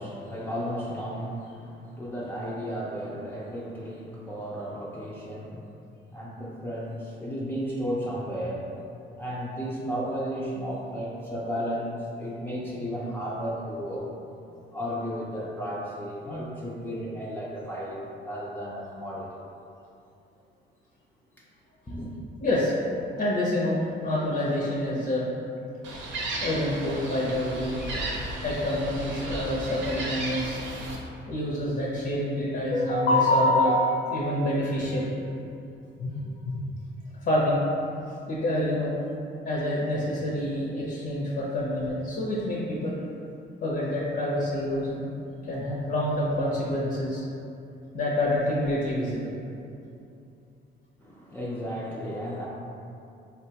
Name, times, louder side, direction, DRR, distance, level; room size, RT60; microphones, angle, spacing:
voice 1, 0.0-5.7 6.1-8.7 9.2-14.1 14.5-19.4 21.9-22.1 51.0-52.5, equal, 10° left, -7 dB, 0.4 m, -34 dB
voice 2, 22.4-22.7 23.2-25.3 26.4-27.8 28.4-30.6 31.3-35.1 36.0-36.5 37.2-37.6 38.3-39.0 39.4-43.0 43.6-45.1 45.4-47.2 47.9-49.3, left 1 dB, 55° left, -6 dB, 0.7 m, -27 dB
Gull seagull, 25.8-31.0, right 2 dB, 70° right, 0.6 m, -34 dB
4.2 x 2.2 x 2.8 m, 2.7 s
cardioid pair, 90°, 20 cm